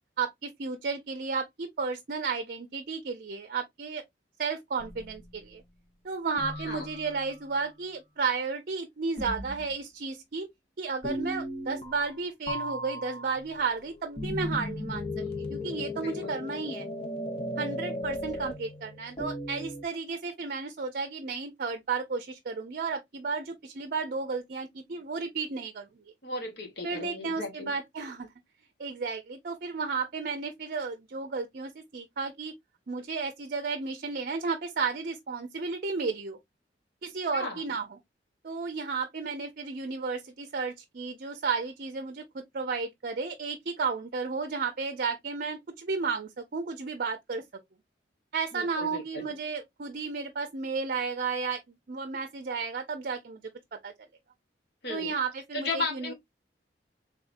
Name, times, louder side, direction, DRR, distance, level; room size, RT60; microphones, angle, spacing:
voice 1, 0.2-4.0 4.4-5.6 6.0-10.5 10.8-16.9 17.6-25.9 26.8-28.3 28.8-32.5 32.9-36.4 37.0-37.9 38.4-47.4 48.3-53.4 53.8-53.9 54.9-56.1, right 4 dB, 55° right, 0.5 m, -33 dB
sound 1, 4.8-5.6 6.4-7.4 9.2-9.7 11.0-12.2 12.5-19.8, left 1 dB, 35° left, 0.8 m, -37 dB
voice 2, 16.0-16.4 26.2-27.7 37.3-37.6 48.5-49.3 54.8-55.1 55.5-56.1, left 2 dB, 65° left, 1.7 m, -35 dB
3.6 x 3.5 x 2.5 m
head